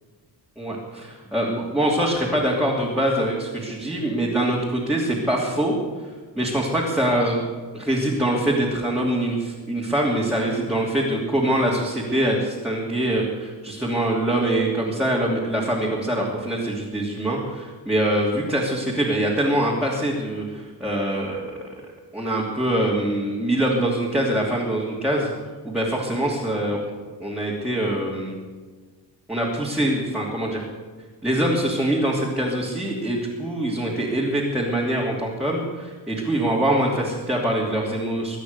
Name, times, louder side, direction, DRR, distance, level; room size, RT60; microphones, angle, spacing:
voice 1, 0.6-5.7 6.4-21.7 22.1-25.3 25.6-26.8 27.2-28.4 29.3-30.6 31.2-38.4, right 1 dB, ahead, -5 dB, 2.8 m, -24 dB
23.0 x 9.4 x 6.7 m, 1.4 s
wide cardioid pair, 140°, 43 cm